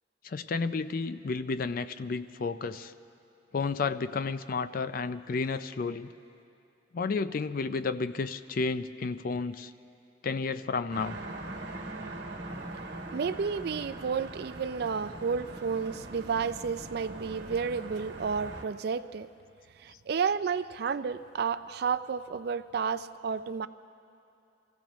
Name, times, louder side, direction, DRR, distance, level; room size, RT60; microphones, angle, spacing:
voice 1, 0.2-2.9 3.5-6.1 6.9-9.7 10.2-11.2, left 4 dB, 50° left, 12 dB, 0.4 m, -32 dB
sound 1, 10.9-18.6, right 2 dB, 75° right, 1.5 m, -42 dB
voice 2, 13.1-19.3 19.8-23.7, right 6 dB, 60° right, 13 dB, 0.4 m, -31 dB
24.5 x 15.5 x 3.1 m, 2.7 s
head